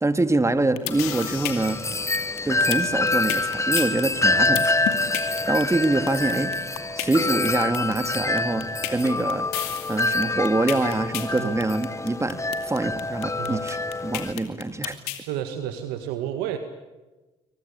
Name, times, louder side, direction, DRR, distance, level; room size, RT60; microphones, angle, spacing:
voice 1, 0.0-1.8 2.4-4.7 5.5-6.5 7.0-9.5 9.9-15.0, right 2 dB, 20° right, 10 dB, 2.4 m, -25 dB
sound 1, 0.5-15.2, left 15 dB, 80° left, 2.5 m, -32 dB
Wind chime, 0.9-14.3, left 2 dB, 20° left, 1.0 m, -26 dB
voice 2, 4.3-4.7 11.4-11.6 13.4-13.7 15.2-16.6, right 11 dB, 80° right, 8 dB, 1.8 m, -31 dB
27.5 x 24.0 x 8.6 m, 1.1 s
hypercardioid pair, 55°, 16 cm